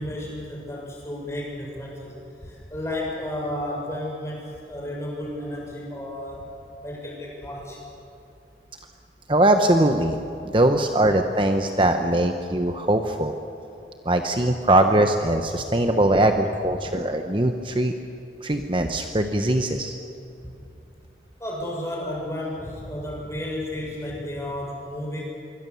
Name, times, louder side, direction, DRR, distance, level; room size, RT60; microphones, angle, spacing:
voice 1, 0.0-6.4 6.8-7.8 15.7-15.8 16.8-16.9 20.4-20.5 21.4-25.2, left 1 dB, 15° left, -2 dB, 6.5 m, -32 dB
voice 2, 9.3-10.2 10.5-13.3 14.1-17.9 18.4-20.0, right 1 dB, 30° right, 6 dB, 0.9 m, -21 dB
26.5 x 23.5 x 7.0 m, 2.8 s
head